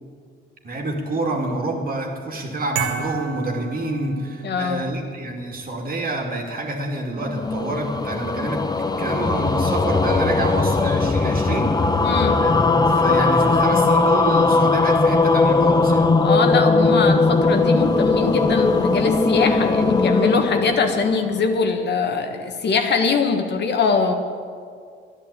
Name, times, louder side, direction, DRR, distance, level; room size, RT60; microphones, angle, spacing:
voice 1, 0.6-12.1 12.4-16.1, right 2 dB, 45° right, 1 dB, 2.4 m, -27 dB
sound 1, 2.7-4.7, right 6 dB, 85° right, 1.6 m, -31 dB
voice 2, 4.4-4.9 12.0-12.4 16.2-24.1, left 5 dB, 60° left, 5 dB, 1.5 m, -22 dB
sound 2, 7.2-21.6, left 3 dB, 20° left, 0.7 m, -19 dB
11.5 x 10.0 x 8.3 m, 2.1 s
cardioid pair, 90°, 20 cm